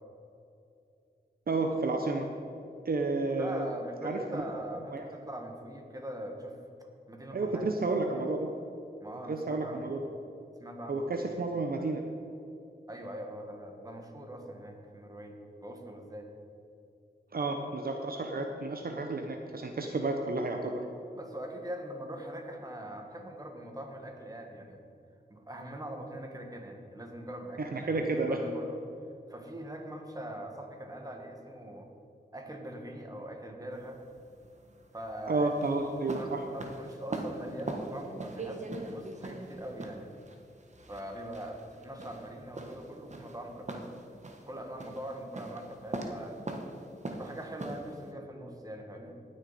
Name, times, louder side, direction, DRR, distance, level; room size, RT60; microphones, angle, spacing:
voice 1, 1.5-2.3 2.9-3.7 4.0-4.4 4.9-5.0 7.3-8.5 9.3-10.0 10.9-12.0 17.3-20.8 27.6-28.4 35.3-36.4, right 3 dB, 60° right, 3 dB, 0.8 m, -31 dB
voice 2, 3.4-6.6 7.1-7.7 9.0-9.9 10.6-11.2 12.9-16.3 21.1-24.8 25.3-28.8 29.3-31.9 32.3-34.0 34.9-35.5 35.8-40.1 40.9-43.9 44.4-46.4 47.1-49.2, right 1 dB, 20° right, 2 dB, 1.7 m, -42 dB
sound 1, 33.7-48.1, right 2 dB, 40° right, 1.2 m, -41 dB
18.5 x 6.5 x 4.2 m, 2.7 s
wide cardioid pair, 75°, 18 cm